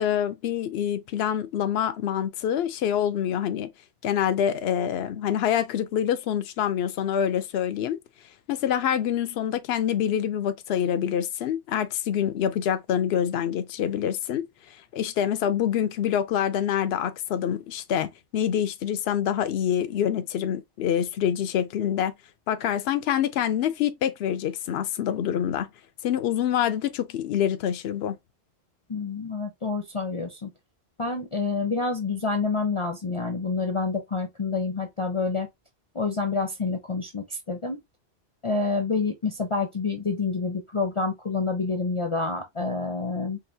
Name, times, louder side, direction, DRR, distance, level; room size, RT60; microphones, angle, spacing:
voice 1, 0.0-3.7 4.0-8.0 8.5-22.1 22.5-25.7 26.0-28.2, left 9 dB, 75° left, 0.8 m, -26 dB
voice 2, 28.9-30.5 31.0-35.5 35.9-37.8 38.4-43.4, left 4 dB, 35° left, 0.7 m, -28 dB
4.8 x 2.6 x 2.6 m
omnidirectional pair, 1.1 m